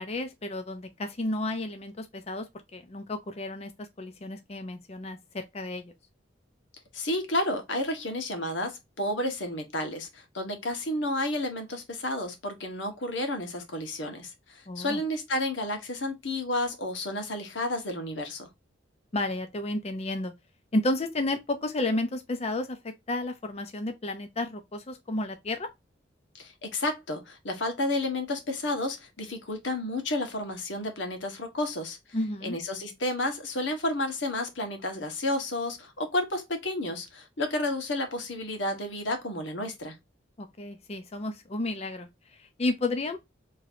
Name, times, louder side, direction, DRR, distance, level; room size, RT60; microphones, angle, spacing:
voice 1, 0.0-5.8 14.7-15.0 19.1-20.3 20.7-25.7 32.1-32.6 40.4-43.2, left 2 dB, 35° left, 0.6 m, -32 dB
voice 2, 6.9-18.5 26.3-32.0 32.4-40.0, left 1 dB, 85° left, 1.4 m, -31 dB
4.5 x 3.1 x 2.5 m
head